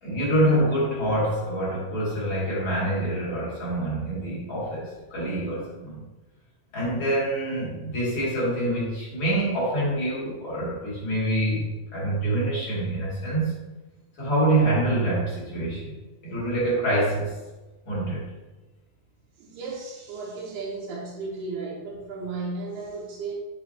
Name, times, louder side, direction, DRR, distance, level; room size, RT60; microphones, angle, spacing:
voice 1, 0.0-6.0 6.7-13.5 14.2-16.0 16.2-17.3 17.8-18.2, right 1 dB, 35° left, -7 dB, 2.9 m, -26 dB
voice 2, 19.4-23.4, right 3 dB, 80° right, -7 dB, 3.2 m, -34 dB
8.8 x 6.4 x 2.9 m, 1.1 s
omnidirectional pair, 4.5 m